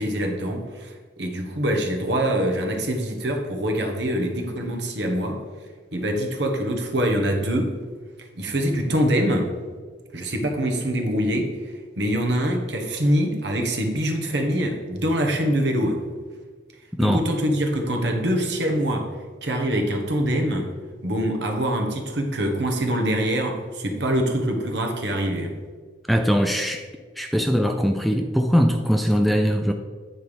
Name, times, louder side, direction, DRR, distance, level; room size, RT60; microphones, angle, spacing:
voice 1, 0.0-5.4 5.9-7.8 8.4-9.6 10.1-11.6 12.0-16.0 17.0-19.1 19.4-20.7 21.0-25.6, equal, 60° right, 2 dB, 1.2 m, -24 dB
voice 2, 26.1-26.9 27.2-29.7, equal, ahead, 5 dB, 0.3 m, -21 dB
9.1 x 4.5 x 5.0 m, 1.5 s
head